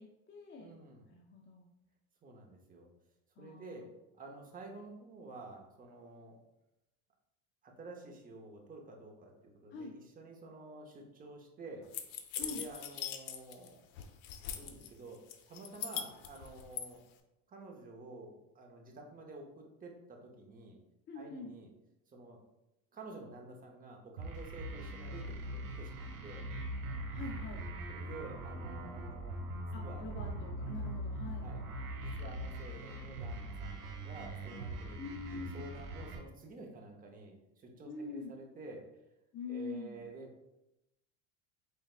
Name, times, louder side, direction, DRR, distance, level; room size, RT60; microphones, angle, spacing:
voice 1, 0.0-0.8 1.1-1.7 3.4-3.9 9.7-9.9 12.3-12.7 21.1-21.5 27.0-27.6 29.7-31.5 35.0-35.6 37.9-38.3 39.3-40.1, left 4 dB, 30° left, -1 dB, 0.5 m, -45 dB
voice 2, 0.6-1.1 2.2-2.9 3.4-3.9 4.2-6.4 7.6-11.9 12.4-13.8 14.6-17.0 17.5-20.8 21.1-21.7 22.1-22.4 22.9-26.5 27.9-30.1 31.4-31.6 32.0-35.0 35.3-38.9 39.5-40.6, right 3 dB, 20° right, 1 dB, 0.7 m, -50 dB
sound 1, 11.9-13.7 14.0-14.9 15.3-16.8, left 10 dB, 85° left, 0.6 m, -40 dB
sound 2, 24.2-36.2, right 1 dB, 85° right, 1.0 m, -41 dB
4.4 x 3.2 x 2.4 m, 0.90 s
supercardioid pair, 120°, 41 cm